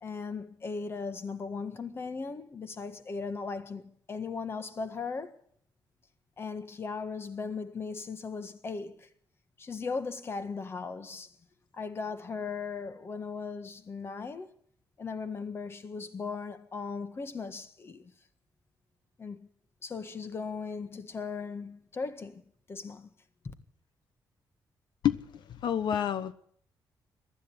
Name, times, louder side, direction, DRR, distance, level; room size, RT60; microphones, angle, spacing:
voice 1, 0.0-5.4 6.4-9.1 9.6-11.3 11.7-14.5 15.0-18.1 19.2-19.5 19.8-22.4 22.7-23.1 23.4-23.5, left 4 dB, 30° left, 1.6 m, -38 dB
voice 2, 25.6-26.3, left 9 dB, 75° left, 1.0 m, -27 dB
23.0 x 13.0 x 9.9 m
wide cardioid pair, 165°, 8 cm